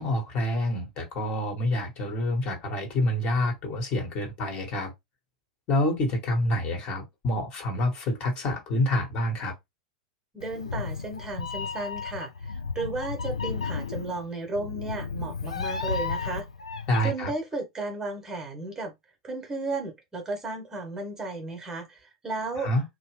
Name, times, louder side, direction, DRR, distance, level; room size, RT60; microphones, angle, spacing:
voice 1, 0.0-4.9 5.7-9.5 16.9-17.3 22.6-22.8, left 1 dB, 40° left, 1.2 m, -27 dB
voice 2, 10.3-16.5 17.0-18.9 19.2-22.7, right 2 dB, 15° right, 1.0 m, -34 dB
Meow, 10.4-17.1, left 5 dB, 80° left, 0.5 m, -33 dB
2.8 x 2.1 x 3.1 m
figure-of-eight pair, 90°, 3 cm